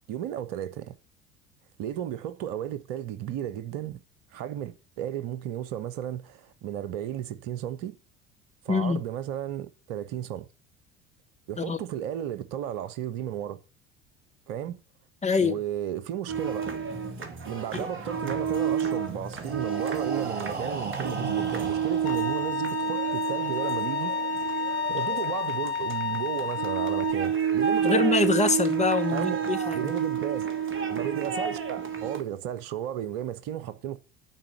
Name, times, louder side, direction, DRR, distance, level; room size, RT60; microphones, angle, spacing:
voice 1, 0.1-1.0 1.8-4.0 4.3-8.0 8.6-10.5 11.5-13.6 14.5-14.8 15.4-16.7 17.4-24.2 24.9-28.0 29.1-29.4 29.7-30.5 30.9-34.0, right 10 dB, 60° right, 1.2 m, -34 dB
voice 2, 8.7-9.0 11.6-11.8 15.2-15.6 27.8-29.9, left 4 dB, 20° left, 1.6 m, -25 dB
sound 1, 16.3-32.2, right 7 dB, 35° right, 2.5 m, -30 dB
Breathing, 19.2-23.1, right 3 dB, 85° right, 1.1 m, -38 dB
Bowed string instrument, 22.1-27.1, left 5 dB, 75° left, 1.2 m, -30 dB
11.5 x 5.0 x 8.2 m
figure-of-eight pair, 65°, 33 cm